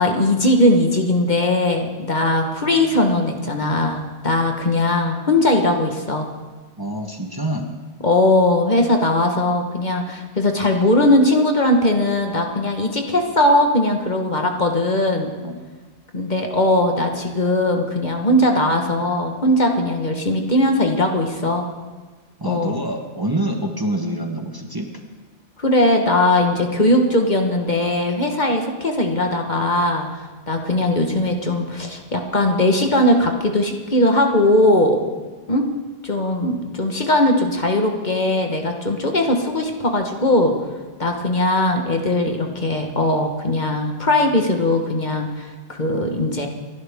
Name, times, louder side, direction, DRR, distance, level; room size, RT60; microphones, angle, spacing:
voice 1, 0.0-6.3 8.0-15.3 16.1-21.6 22.4-22.8 25.6-35.0 35.5-35.6 36.0-40.5 41.0-46.5, left 1 dB, 40° left, 3 dB, 1.5 m, -19 dB
voice 2, 6.8-7.7 15.4-15.5 22.4-24.9 35.1-35.2, right 1 dB, 20° right, 3 dB, 1.2 m, -26 dB
27.5 x 11.5 x 3.6 m, 1.4 s
omnidirectional pair, 1.1 m